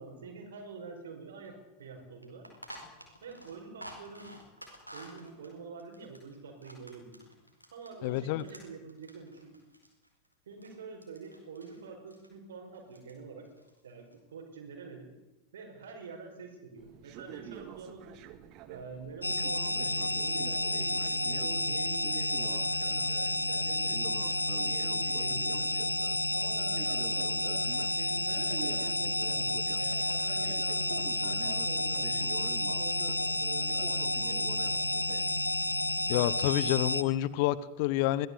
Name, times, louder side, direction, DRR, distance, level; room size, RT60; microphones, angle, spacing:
voice 1, 0.0-2.5 3.2-4.4 4.9-7.2 7.7-9.6 10.4-13.5 13.8-15.1 15.5-18.1 18.7-25.7 26.3-27.7 28.0-35.3, right 4 dB, 65° right, 4 dB, 5.3 m, -46 dB
sound 1, 1.4-1.5 1.8-1.9 2.2-8.0 8.3-10.7 11.0-11.8 12.1-12.3 12.7-13.1 13.4-14.1, equal, 90° right, 4.7 m, -51 dB
voice 2, 8.0-8.4 36.1-38.3, left 14 dB, 45° left, 19 dB, 1.0 m, -28 dB
sound 2, 16.8-36.3, right 9 dB, 40° right, 2.0 m, -48 dB
sound 3, 19.2-37.0, left 1 dB, 85° left, 1.2 m, -31 dB
23.5 x 17.5 x 8.3 m, 0.98 s
figure-of-eight pair, 90°, 0 cm